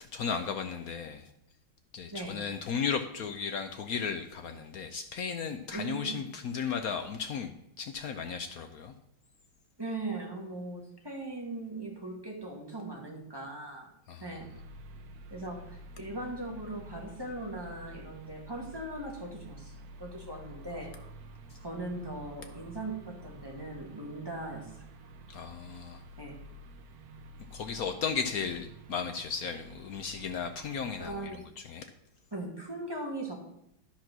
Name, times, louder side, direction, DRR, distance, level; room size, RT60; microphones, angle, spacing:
voice 1, 0.1-1.3 1.9-7.5 7.8-8.9 14.1-14.2 25.3-26.0 27.5-31.4 31.7-31.9, left 6 dB, 75° left, 7 dB, 0.8 m, -35 dB
voice 2, 5.7-6.2 9.8-13.9 14.2-14.5 15.3-20.9 21.6-24.9 26.2-26.4 31.0-31.4 32.3-33.4, right 2 dB, 10° right, -1 dB, 1.7 m, -39 dB
sound 1, 14.4-31.1, right 1 dB, 60° right, 1.1 m, -50 dB
10.5 x 5.9 x 6.0 m, 0.79 s
omnidirectional pair, 2.2 m